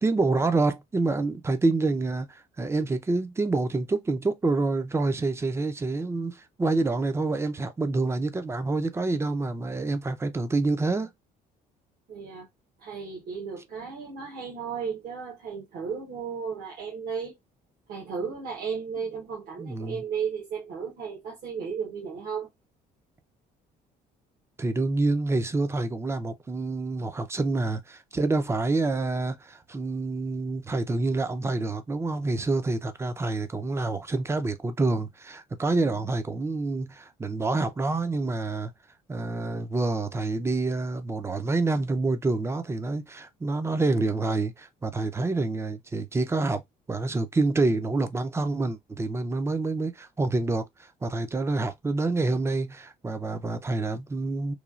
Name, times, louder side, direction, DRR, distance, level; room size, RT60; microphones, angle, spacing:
voice 1, 0.0-11.1 19.6-20.0 24.6-38.7 39.1-46.6 46.9-54.5, right 3 dB, 15° right, 0.4 m, -27 dB
voice 2, 12.1-12.5 12.8-17.4 17.9-22.5, right 6 dB, 65° right, 1.0 m, -34 dB
3.1 x 2.3 x 2.4 m
cardioid pair, 110°, 17 cm